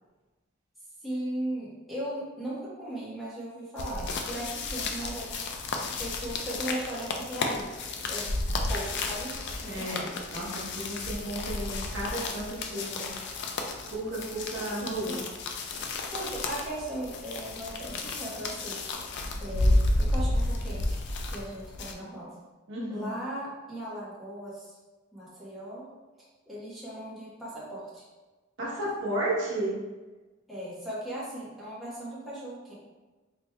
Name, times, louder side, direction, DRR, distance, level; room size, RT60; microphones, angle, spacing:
voice 1, 1.0-5.3 5.9-7.7 8.1-8.3 8.7-9.4 9.6-10.1 14.5-15.2 15.8-18.8 19.4-21.0 21.3-22.3 22.9-24.8 25.1-25.9 26.2-28.0 30.5-32.7, right 1 dB, ahead, -10 dB, 1.2 m, -38 dB
sound 1, 3.8-21.9, left 2 dB, 60° left, 0.4 m, -32 dB
voice 2, 9.6-13.1 13.9-15.2 22.7-23.1 28.6-29.8, right 1 dB, 60° right, -6 dB, 1.0 m, -33 dB
4.4 x 3.2 x 2.2 m, 1.2 s
head